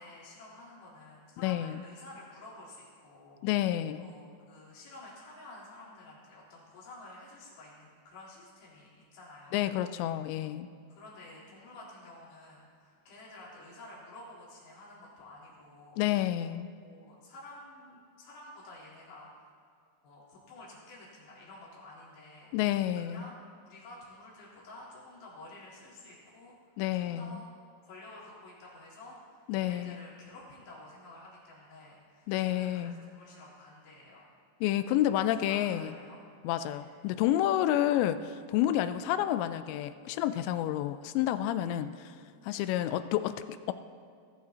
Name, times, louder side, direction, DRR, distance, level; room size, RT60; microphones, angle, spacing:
voice 1, 0.0-3.5 4.0-9.8 10.1-10.2 10.9-16.0 16.8-19.5 20.0-22.5 22.9-26.5 26.9-27.5 27.8-34.3 35.4-36.2 36.7-36.9 42.7-42.9, left 2 dB, 65° left, -8 dB, 5.8 m, -51 dB
voice 2, 1.4-1.8 3.4-4.1 9.5-10.7 16.0-16.7 22.5-23.3 26.8-27.4 29.5-30.0 32.3-33.0 34.6-35.9 36.4-42.1 42.4-43.7, left 12 dB, 85° left, 11 dB, 2.6 m, -29 dB
20.5 x 15.5 x 2.9 m, 2.2 s
omnidirectional pair, 5.3 m